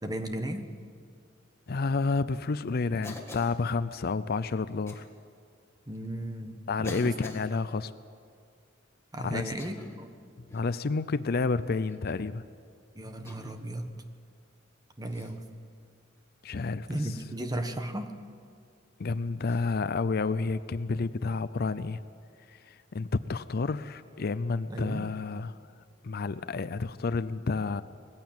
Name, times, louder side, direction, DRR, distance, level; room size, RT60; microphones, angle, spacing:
voice 1, 0.0-0.7 5.9-7.1 9.1-10.1 12.9-13.9 15.0-15.4 16.9-18.1 24.7-25.1, right 1 dB, 20° right, 6 dB, 1.3 m, -35 dB
voice 2, 1.7-5.1 6.7-7.9 9.2-9.4 10.5-12.4 16.4-16.9 19.0-22.0 22.5-25.5 26.0-27.8, left 4 dB, 50° left, 14 dB, 0.5 m, -30 dB
Cough, 3.0-3.6 4.9-5.1 5.9-6.0 6.8-7.5 9.4-10.1 10.5-10.8 11.9-12.2 13.2-13.6 15.1-15.4 17.6-17.7 19.4-19.6, left 2 dB, 15° left, 1.9 m, -45 dB
20.0 x 15.0 x 8.8 m, 2.2 s
head